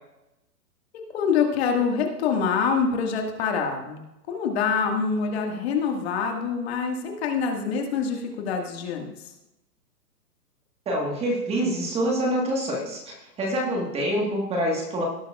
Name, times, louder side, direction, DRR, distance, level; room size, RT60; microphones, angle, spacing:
voice 1, 1.1-9.1, left 6 dB, 40° left, 2 dB, 1.9 m, -25 dB
voice 2, 10.8-15.0, equal, 10° right, -1 dB, 1.5 m, -26 dB
17.5 x 8.7 x 2.4 m, 0.93 s
hypercardioid pair, 145°, 48 cm